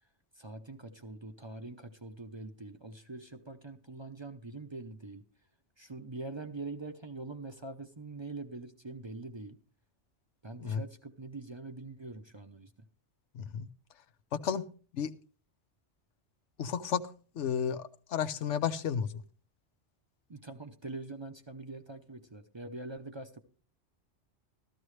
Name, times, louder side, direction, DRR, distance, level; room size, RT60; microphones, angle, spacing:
voice 1, 0.4-5.2 5.8-9.6 10.4-12.7 20.3-23.4, right 2 dB, 30° right, 7 dB, 0.6 m, -44 dB
voice 2, 13.3-13.7 14.3-14.6 14.9-15.1 16.6-17.0 17.3-19.1, left 7 dB, 90° left, 11 dB, 1.1 m, -32 dB
14.0 x 13.0 x 3.2 m, 0.38 s
omnidirectional pair, 1.2 m